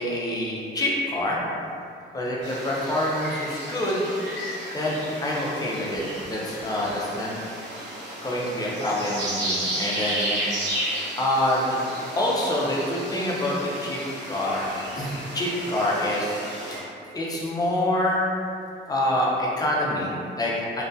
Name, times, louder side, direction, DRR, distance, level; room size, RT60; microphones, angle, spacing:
voice 1, 0.0-1.4 2.1-4.0 4.7-7.3 8.2-10.3 11.2-11.8 12.2-14.0 14.3-16.4 16.7-16.8 17.1-18.2 18.9-20.8, left 1 dB, 20° left, -5 dB, 0.5 m, -26 dB
sound 1, 2.4-16.8, right 1 dB, 60° right, 0.9 m, -33 dB
2.6 x 2.2 x 2.2 m, 2.5 s
cardioid pair, 90°, 20 cm